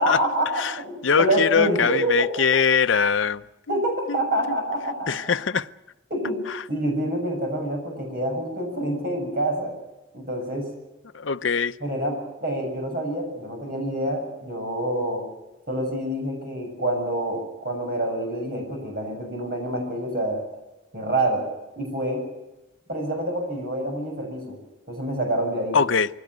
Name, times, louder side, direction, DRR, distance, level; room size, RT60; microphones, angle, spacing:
voice 1, 0.0-2.6 3.7-5.3 6.1-6.4 6.7-9.7 10.1-10.7 11.8-15.2 15.7-20.4 20.9-21.4 21.8-22.2 22.9-24.6 24.9-25.8, right 1 dB, 45° right, 6.9 m, -27 dB
voice 2, 1.0-3.4 3.7-3.8 4.1-4.2 4.5-4.6 5.1-5.7 11.1-11.7 25.7-26.1, left 6 dB, 75° left, 0.7 m, -22 dB
21.5 x 17.0 x 9.4 m
head